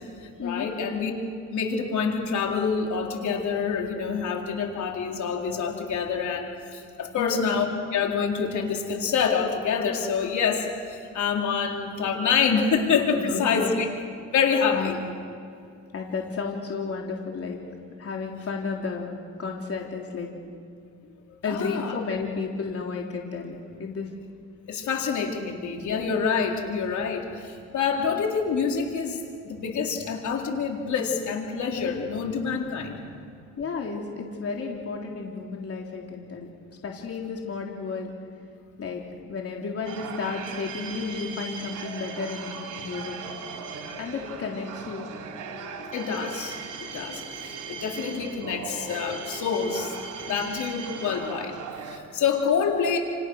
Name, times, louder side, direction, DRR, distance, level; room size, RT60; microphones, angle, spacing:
voice 1, 0.2-1.1 1.5-7.7 7.9-13.9 14.3-15.0 21.4-22.0 24.7-33.2 45.9-49.9 50.2-53.0, left 6 dB, 70° left, 1 dB, 4.2 m, -27 dB
voice 2, 7.2-7.5 13.2-13.7 14.7-15.0 15.9-19.1 19.4-20.6 21.0-24.1 25.8-26.2 31.8-32.0 33.6-36.5 36.8-38.1 38.8-43.2 44.0-45.1 50.1-50.6, left 4 dB, 50° left, 0 dB, 3.7 m, -33 dB
sound 1, 39.9-52.0, right 5 dB, 85° right, 4.1 m, -38 dB
30.0 x 29.0 x 6.6 m, 2.5 s
cardioid pair, 90°, 30 cm